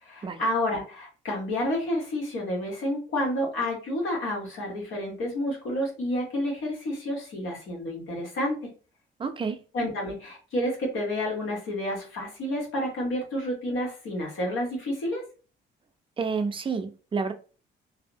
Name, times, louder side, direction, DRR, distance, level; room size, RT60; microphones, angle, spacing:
voice 1, 0.0-8.7 9.7-15.2, left 1 dB, 85° left, 1.3 m, -30 dB
voice 2, 9.2-9.6 16.2-17.3, right 5 dB, 25° right, 0.4 m, -29 dB
2.7 x 2.1 x 2.6 m
cardioid pair, 90°, 20 cm